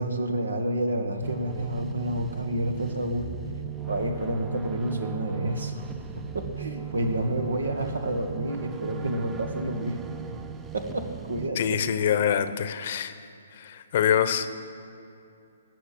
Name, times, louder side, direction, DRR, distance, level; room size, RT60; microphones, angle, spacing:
voice 1, 0.0-3.3 3.9-5.8 6.3-10.0 10.7-11.0 11.3-11.8 14.1-14.2, right 1 dB, 85° right, 6 dB, 1.6 m, -29 dB
sound 1, 1.2-11.5, right 7 dB, 15° right, 0.6 m, -38 dB
voice 2, 11.6-13.1 13.6-14.5, left 9 dB, 50° left, 12 dB, 0.8 m, -25 dB
16.5 x 6.5 x 8.5 m, 2.6 s
hypercardioid pair, 135°, 0 cm